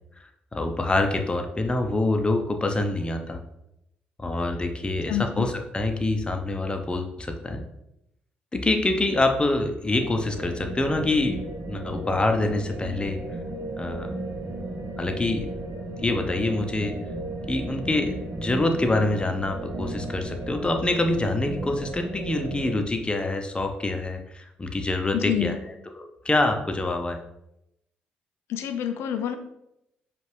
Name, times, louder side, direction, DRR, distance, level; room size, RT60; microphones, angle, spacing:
voice 1, 0.5-3.4 4.2-7.6 8.5-11.4 11.7-13.2 13.8-14.1 15.0-15.5 16.0-16.9 17.5-25.6 26.0-27.2, left 2 dB, 20° left, 5 dB, 0.7 m, -26 dB
voice 2, 5.1-5.4 25.1-25.6 28.5-29.4, left 11 dB, 70° left, 7 dB, 0.5 m, -27 dB
sound 1, 9.9-22.8, right 2 dB, 45° right, 0.8 m, -35 dB
5.0 x 2.5 x 3.3 m, 0.82 s
hypercardioid pair, 45°, 5 cm